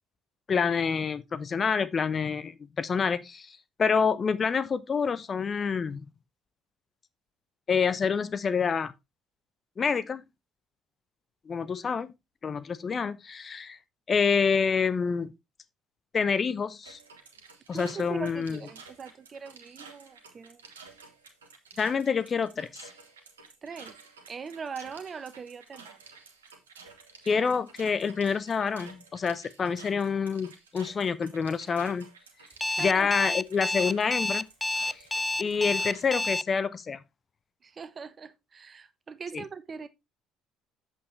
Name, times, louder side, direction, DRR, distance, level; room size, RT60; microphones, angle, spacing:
voice 1, 0.5-6.0 7.7-8.9 9.8-10.2 11.5-12.1 12.4-13.8 14.1-15.3 16.1-17.0 17.7-18.6 21.8-22.7 27.3-32.1 32.8-34.5 35.4-37.0 39.3-39.4, left 6 dB, 40° left, 0.8 m, -27 dB
sound 1, 16.8-36.1, right 4 dB, 85° right, 1.4 m, -51 dB
voice 2, 17.7-20.6 23.6-24.0 24.3-26.0 32.8-33.1 37.6-39.9, right 6 dB, 40° right, 1.1 m, -41 dB
Alarm, 32.6-36.4, left 2 dB, 15° left, 0.4 m, -29 dB
8.3 x 7.4 x 3.3 m
hypercardioid pair, 55°, 0 cm